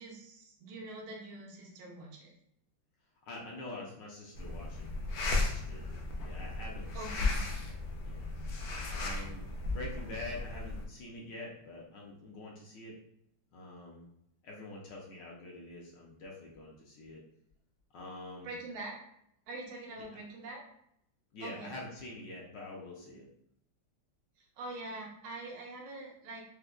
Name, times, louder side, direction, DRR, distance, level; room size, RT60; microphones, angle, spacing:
voice 1, 0.0-2.3 6.9-7.3 18.4-18.9 19.5-20.6 21.4-21.7 24.4-26.4, right 2 dB, 80° right, -1 dB, 1.6 m, -44 dB
voice 2, 3.2-4.9 5.3-5.8 6.2-7.5 8.0-8.3 8.9-12.9 13.5-14.1 14.4-17.2 17.9-18.6 20.1-20.2 21.3-23.3, left 2 dB, 70° left, -3 dB, 1.2 m, -46 dB
sound 1, 4.3-10.9, left 2 dB, 85° left, 0.8 m, -35 dB
4.9 x 2.1 x 2.2 m, 0.74 s
omnidirectional pair, 2.2 m